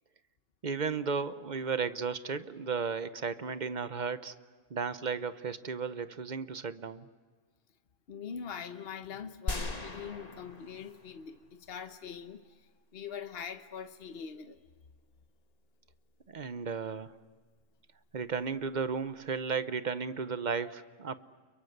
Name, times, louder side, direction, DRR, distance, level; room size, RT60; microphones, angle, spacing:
voice 1, 0.6-4.3 4.7-7.1 16.3-17.1 18.1-21.2, right 5 dB, 45° right, 13 dB, 1.0 m, -34 dB
voice 2, 8.1-14.6, left 7 dB, 65° left, 8 dB, 1.2 m, -43 dB
sound 1, 9.5-11.4 11.7-11.8, left 2 dB, 40° left, 1.8 m, -38 dB
30.0 x 23.0 x 8.0 m, 1.5 s
omnidirectional pair, 1.1 m